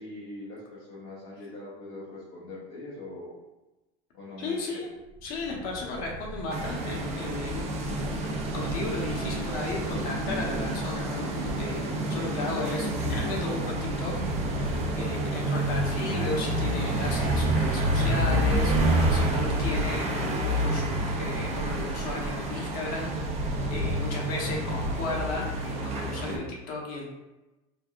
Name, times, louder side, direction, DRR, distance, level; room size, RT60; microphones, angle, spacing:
voice 1, 0.0-3.4 4.1-4.8 11.8-12.3 23.6-24.1 26.1-26.4, left 1 dB, 80° left, -7 dB, 0.9 m, -42 dB
voice 2, 4.4-4.9 5.2-8.2 8.5-14.1 14.4-27.1, left 2 dB, 55° left, -1 dB, 0.9 m, -35 dB
sound 1, 4.9-12.0, right 1 dB, 20° left, 0.7 m, -41 dB
sound 2, 6.5-26.4, right 1 dB, 35° right, 0.5 m, -28 dB
3.5 x 2.2 x 2.4 m, 1.0 s
supercardioid pair, 135°, 18 cm